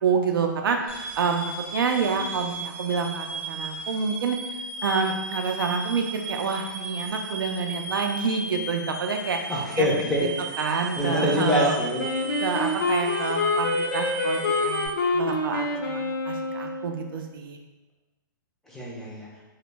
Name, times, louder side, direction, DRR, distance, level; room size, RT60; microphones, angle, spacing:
voice 1, 0.0-4.4 4.8-9.9 10.6-11.8 12.4-17.6, right 5 dB, 85° right, 4 dB, 0.4 m, -28 dB
sound 1, 0.9-14.9, right 2 dB, 40° right, 0.6 m, -36 dB
voice 2, 9.5-10.3 11.0-12.1 18.7-19.3, left 1 dB, 5° left, -6 dB, 0.4 m, -25 dB
Wind instrument woodwind instrument, 12.0-17.0, left 2 dB, 75° left, 0.4 m, -26 dB
2.1 x 2.0 x 3.2 m, 1.1 s
hypercardioid pair, 150°, 11 cm